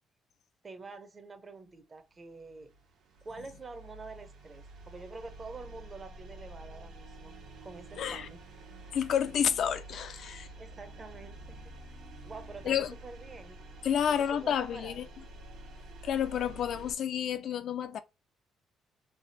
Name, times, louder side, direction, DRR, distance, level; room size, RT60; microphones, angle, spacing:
voice 1, 0.6-2.7 3.2-7.3 7.6-8.4 10.6-11.7 12.2-13.6 14.0-15.1, right 3 dB, 30° right, 0.5 m, -47 dB
sound 1, 2.0-17.0, right 2 dB, 75° right, 0.8 m, -49 dB
voice 2, 8.0-8.3 8.9-10.5 12.6-12.9 13.8-15.0 16.0-18.0, left 9 dB, 60° left, 0.3 m, -30 dB
3.3 x 2.3 x 2.6 m
cardioid pair, 115°, 0 cm